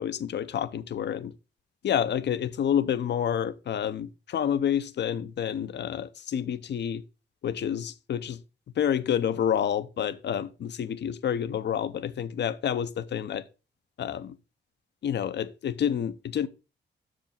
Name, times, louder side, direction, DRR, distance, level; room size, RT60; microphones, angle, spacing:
voice 1, 0.0-1.3 1.8-7.0 7.4-8.4 8.8-13.4 14.0-14.3 15.0-16.5, left 9 dB, 70° left, 0.7 m, -28 dB
6.7 x 5.1 x 5.2 m
cardioid pair, 85°, 19 cm